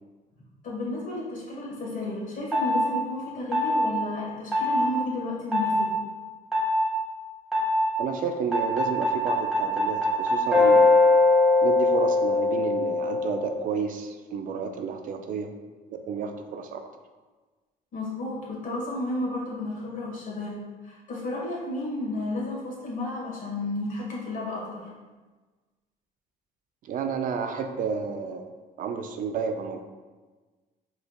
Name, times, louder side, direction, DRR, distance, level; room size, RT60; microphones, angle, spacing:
voice 1, 0.6-5.9 17.9-20.5 20.8-24.8, left 2 dB, 50° left, -4 dB, 1.4 m, -32 dB
sound 1, 2.5-2.9 3.5-3.9 4.5-4.9 5.5-5.8 6.5-6.9 7.5-7.9 8.5-13.6, left 2 dB, ahead, 1.4 m, -21 dB
voice 2, 8.0-11.0 11.6-15.5 15.9-16.8 26.8-29.8, right 6 dB, 55° right, 6 dB, 0.4 m, -31 dB
5.0 x 3.2 x 2.3 m, 1.3 s
cardioid pair, 110°, 17 cm